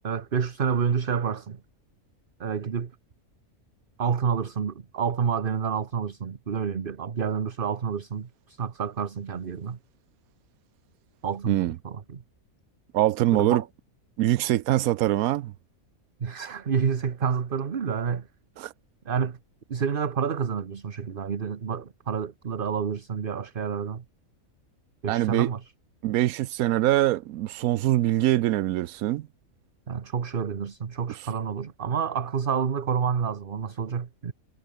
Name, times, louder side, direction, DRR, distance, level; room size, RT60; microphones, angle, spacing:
voice 1, 0.0-1.6 2.4-2.9 4.0-9.8 11.2-12.2 13.3-13.7 16.2-18.3 19.1-19.4 19.7-24.0 25.0-25.6 29.9-34.3, right 6 dB, 40° right, 1.2 m, -29 dB
voice 2, 12.9-13.6 14.2-15.5 18.6-18.7 25.1-25.5 26.0-29.3, right 15 dB, 90° right, 1.1 m, -23 dB
omnidirectional pair, 1.4 m